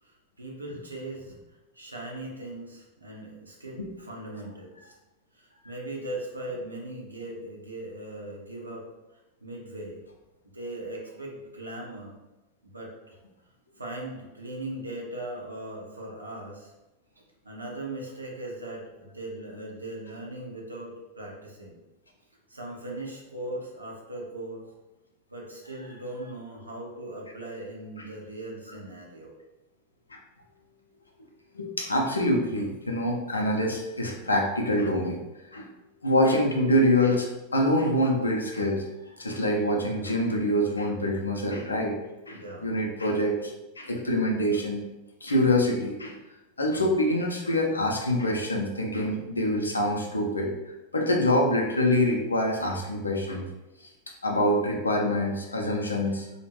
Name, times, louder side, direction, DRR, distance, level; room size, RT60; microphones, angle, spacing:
voice 1, 0.0-1.3 1.7-4.9 5.3-8.9 9.4-10.0 10.5-12.2 12.6-13.1 13.7-16.7 17.4-21.8 22.5-24.6 25.3-29.3 42.3-42.7, right 1 dB, 80° right, -2 dB, 0.5 m, -39 dB
voice 2, 31.5-35.2 35.5-35.7 36.0-37.3 37.5-38.8 39.2-42.0 42.3-43.5 43.8-44.8 45.2-46.1 46.6-53.5 53.8-53.9 54.2-56.3, left 1 dB, 80° left, 1 dB, 0.4 m, -25 dB
2.3 x 2.1 x 3.2 m, 1.0 s
figure-of-eight pair, 90°, 0 cm